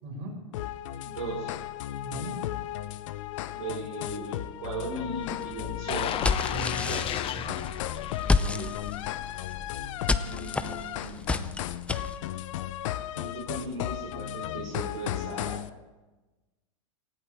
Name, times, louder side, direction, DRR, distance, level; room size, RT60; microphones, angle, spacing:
voice 1, 0.0-0.4 2.0-2.4 3.7-3.8 6.4-7.6, right 2 dB, 55° right, -1 dB, 6.6 m, -39 dB
sound 1, 0.5-15.7, left 13 dB, 65° left, 0.6 m, -35 dB
voice 2, 1.0-1.5 3.5-6.1 8.2-8.7 10.2-11.3 13.1-15.6, right 2 dB, 85° right, -4 dB, 4.9 m, -37 dB
sound 2, 5.2-12.2, left 3 dB, 5° left, 0.6 m, -31 dB
sound 3, 5.9-8.8 9.2-9.4, left 11 dB, 30° left, 0.9 m, -33 dB
19.0 x 15.0 x 3.6 m, 1.2 s
hypercardioid pair, 115°, 17 cm